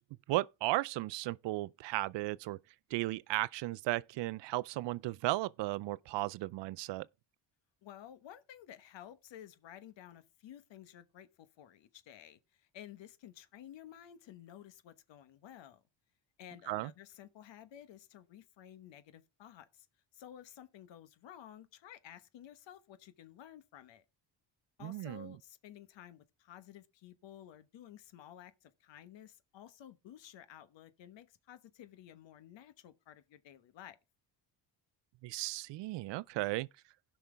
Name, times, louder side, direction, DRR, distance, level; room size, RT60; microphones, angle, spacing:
voice 1, 0.3-2.6 2.9-7.1 16.7-16.9 24.8-25.4 35.2-36.7, right 18 dB, 70° right, 0.5 m, -35 dB
voice 2, 7.8-15.8 16.4-19.9 20.1-24.0 24.8-34.0, left 10 dB, 70° left, 1.2 m, -53 dB
16.5 x 5.9 x 3.4 m
cardioid pair, 105°, 46 cm